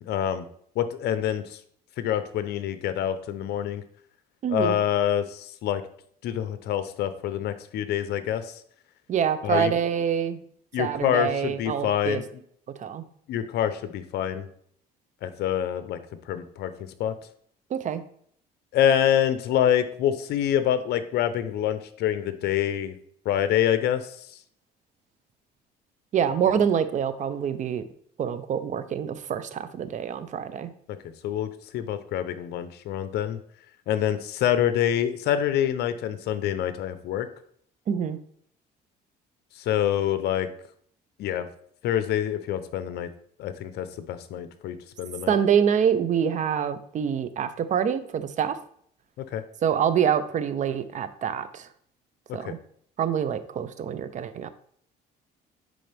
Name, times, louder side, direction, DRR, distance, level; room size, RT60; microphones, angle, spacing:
voice 1, 0.0-0.4 0.8-1.6 2.0-3.8 4.5-5.8 6.2-8.5 9.4-9.7 10.7-12.2 13.3-14.5 15.2-16.0 16.3-17.1 18.7-23.0 23.2-24.1 31.2-33.4 33.9-37.3 39.6-40.5 41.2-41.5 41.8-43.1 43.4-45.4 49.2-49.4 52.4-52.5, left 10 dB, 75° left, 11 dB, 0.8 m, -26 dB
voice 2, 4.4-4.8 9.1-10.4 10.8-12.2 12.8-13.0 17.7-18.0 26.1-27.8 28.2-30.7 37.9-38.2 45.3-48.6 49.6-51.7 52.3-52.6 53.0-54.5, right 8 dB, 45° right, 12 dB, 0.7 m, -26 dB
10.0 x 3.9 x 3.4 m, 0.63 s
cardioid pair, 110°, 17 cm